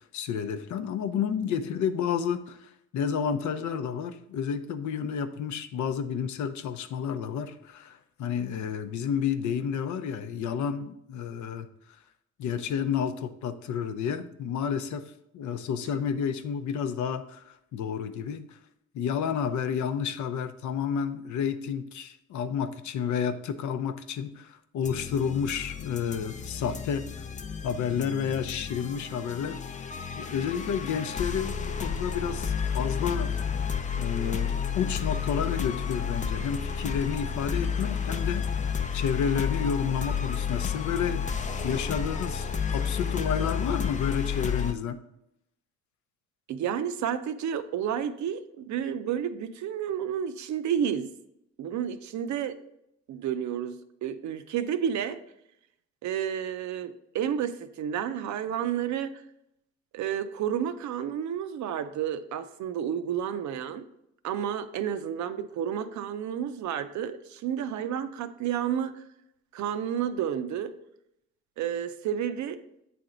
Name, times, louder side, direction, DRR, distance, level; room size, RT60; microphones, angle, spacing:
voice 1, 0.1-11.7 12.4-18.6 18.9-27.1 27.6-33.4 34.0-38.4 38.9-41.2 41.6-45.0, left 7 dB, 70° left, 9 dB, 0.6 m, -31 dB
sound 1, 24.8-44.7, left 7 dB, 25° left, 0.4 m, -31 dB
voice 2, 46.5-51.1 51.6-52.6 53.1-55.2 56.0-59.2 59.9-63.8 64.2-69.0 69.5-70.7 71.6-72.6, right 9 dB, 70° right, 11 dB, 0.5 m, -31 dB
7.7 x 3.4 x 3.8 m, 0.80 s
cardioid pair, 90°, 30 cm